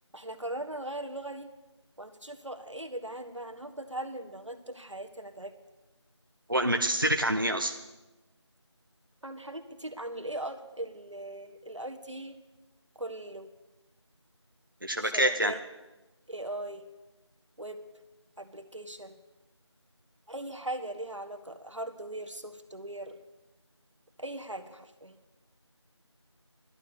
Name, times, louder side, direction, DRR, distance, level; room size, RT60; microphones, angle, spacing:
voice 1, 0.1-1.5 2.0-5.5 9.2-12.4 13.0-13.5 15.0-15.6 16.3-16.8 17.6-17.8 18.4-19.2 20.3-23.2 24.2-25.1, right 1 dB, 85° right, 7 dB, 1.6 m, -39 dB
voice 2, 6.5-7.7 14.8-15.5, right 1 dB, 45° right, 4 dB, 0.8 m, -26 dB
11.5 x 11.5 x 6.8 m, 1.1 s
figure-of-eight pair, 180°, 15 cm